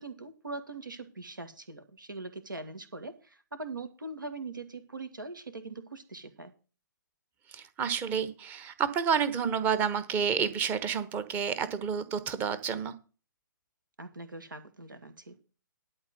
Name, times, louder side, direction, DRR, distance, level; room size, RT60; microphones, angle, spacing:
voice 1, 0.0-6.5 14.0-15.4, right 3 dB, 70° right, 9 dB, 2.1 m, -42 dB
voice 2, 7.5-12.9, right 7 dB, 15° right, 12 dB, 1.1 m, -30 dB
11.5 x 4.4 x 8.0 m, 0.35 s
figure-of-eight pair, 130°, 11 cm